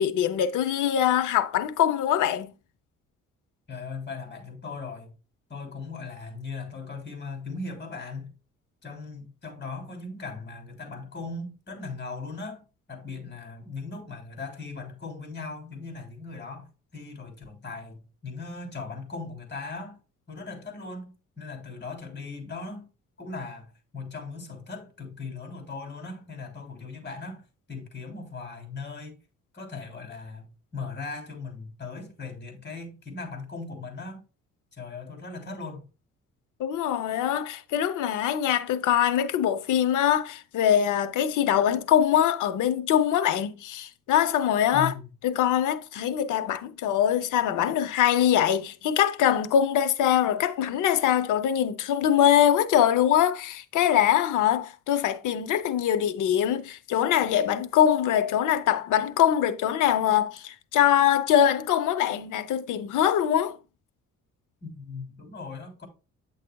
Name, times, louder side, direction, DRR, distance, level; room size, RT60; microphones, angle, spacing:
voice 1, 0.0-2.5 36.6-44.9 45.2-63.6, left 10 dB, 85° left, 0.8 m, -23 dB
voice 2, 3.7-5.1 5.5-8.3 8.8-12.6 12.9-16.7 16.9-20.0 20.3-22.9 23.2-29.2 29.5-34.2 34.7-35.8 44.7-45.1 64.6-65.9, left 4 dB, 35° left, 3.2 m, -38 dB
9.0 x 6.5 x 2.3 m
cardioid pair, 90°, 30 cm